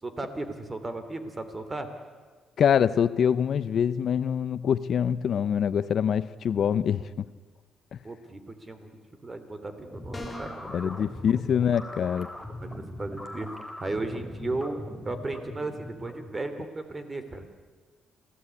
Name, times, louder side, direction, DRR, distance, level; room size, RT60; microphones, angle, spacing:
voice 1, 0.0-1.9 8.0-11.4 12.6-13.5 13.8-14.8 15.0-17.5, right 2 dB, 25° right, 9 dB, 3.3 m, -35 dB
voice 2, 2.6-7.3 7.9-8.0 10.7-12.3, left 8 dB, 60° left, 15 dB, 0.7 m, -25 dB
sound 1, 9.9-16.7, left 1 dB, ahead, 3.7 m, -41 dB
sound 2, 10.1-10.7, left 1 dB, 20° left, 5.7 m, -39 dB
27.5 x 16.0 x 9.7 m, 1.4 s
cardioid pair, 90°, 0 cm